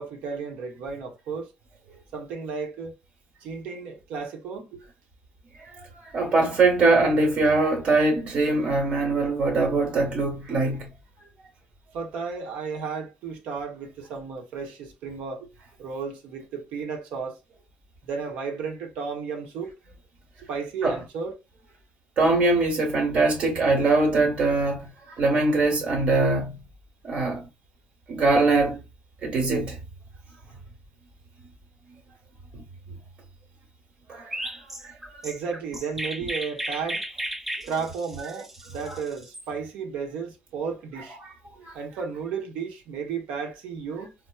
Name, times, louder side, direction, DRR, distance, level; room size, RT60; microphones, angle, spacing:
voice 1, 0.0-1.5 2.1-3.0 3.4-4.8 11.9-15.5 15.8-17.4 18.0-19.7 20.4-21.3 35.2-37.0 37.7-41.2 41.7-44.1, right 5 dB, 85° right, 0.9 m, -33 dB
voice 2, 5.6-10.9 20.8-21.0 22.2-26.6 27.0-27.5 28.1-28.8 29.2-29.8 32.5-32.6 34.1-34.5 34.8-34.9 38.9-39.0 41.2-41.3 41.6-41.8, right 3 dB, 55° right, 1.2 m, -22 dB
Chirp tweet, 34.3-39.4, right 1 dB, 10° right, 0.5 m, -34 dB
4.2 x 2.0 x 2.3 m
cardioid pair, 105°, 2 cm